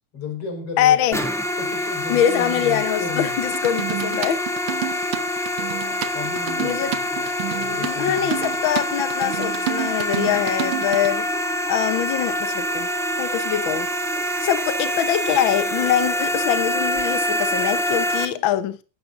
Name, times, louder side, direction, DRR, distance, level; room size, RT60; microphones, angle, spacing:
voice 1, 0.1-1.3 1.6-3.5 6.1-8.6, left 5 dB, 50° left, 5.5 m, -34 dB
voice 2, 0.8-1.2 2.1-4.4 6.6-6.9 7.8-11.4 11.7-12.9 13.2-13.9 14.4-18.8, left 10 dB, 70° left, 1.2 m, -23 dB
sound 1, 1.1-18.2, equal, ahead, 1.9 m, -25 dB
sound 2, 3.5-11.1, right 12 dB, 55° right, 1.8 m, -30 dB
16.5 x 13.0 x 2.6 m
omnidirectional pair, 3.5 m